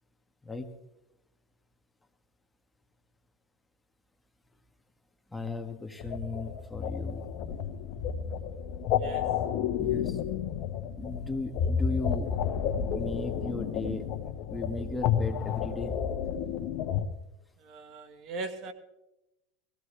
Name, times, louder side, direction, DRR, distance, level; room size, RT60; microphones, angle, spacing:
voice 1, 5.3-7.3 9.8-10.2 11.0-12.4 12.9-14.1 14.5-16.0, left 2 dB, 10° left, 5 dB, 1.8 m, -36 dB
sound 1, 6.0-17.1, left 8 dB, 60° left, 1.2 m, -31 dB
voice 2, 17.6-18.7, right 3 dB, 50° right, 9 dB, 1.6 m, -39 dB
20.0 x 15.5 x 3.4 m, 0.92 s
supercardioid pair, 105°, 0 cm